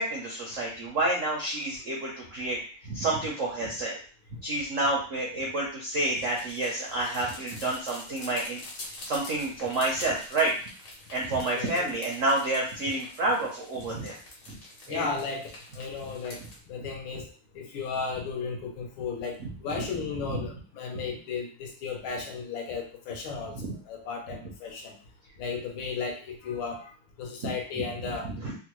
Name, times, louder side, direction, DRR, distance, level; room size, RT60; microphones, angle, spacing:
voice 1, 0.0-4.0 4.4-8.6 9.0-10.5 11.1-14.2 14.5-14.6 14.9-15.1 19.4-19.8 20.3-20.4 23.5-23.7 27.4-27.5 28.2-28.6, right 2 dB, 75° right, -3 dB, 0.7 m, -29 dB
sound 1, 5.9-16.6, left 2 dB, 55° left, 1.3 m, -46 dB
voice 2, 11.5-11.9 14.9-16.4 16.7-17.3 17.5-25.0 25.4-28.3, left 5 dB, 75° left, 2 dB, 1.5 m, -35 dB
3.7 x 2.2 x 3.0 m, 0.40 s
omnidirectional pair, 2.3 m